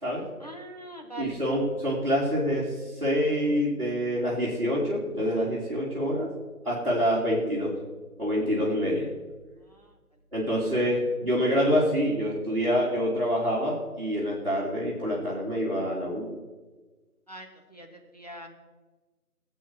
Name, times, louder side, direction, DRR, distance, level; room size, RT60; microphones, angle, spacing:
voice 1, 0.4-1.4 9.7-9.9 17.3-18.5, right 1 dB, 25° left, 2 dB, 1.2 m, -43 dB
voice 2, 1.2-6.3 6.6-7.7 8.2-9.1 10.3-16.3, equal, 35° right, -9 dB, 3.7 m, -26 dB
22.0 x 8.2 x 4.9 m, 1.3 s
figure-of-eight pair, 165°, 46 cm